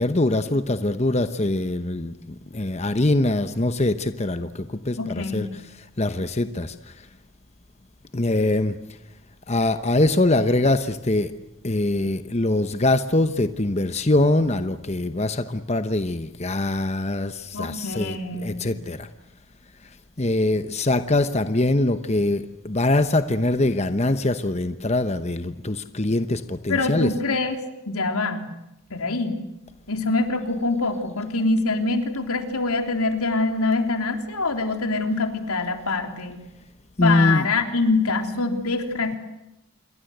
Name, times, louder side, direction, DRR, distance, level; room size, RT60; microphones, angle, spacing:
voice 1, 0.0-2.1 2.5-6.9 8.1-8.7 9.5-11.3 11.6-19.1 20.2-27.1 37.0-37.5, left 2 dB, 30° left, 10 dB, 0.9 m, -23 dB
voice 2, 5.0-5.4 17.5-18.7 26.7-27.6 27.9-28.5 28.9-29.4 29.9-36.4 37.0-39.2, left 3 dB, 85° left, 6 dB, 3.6 m, -24 dB
28.0 x 23.5 x 8.0 m, 0.93 s
head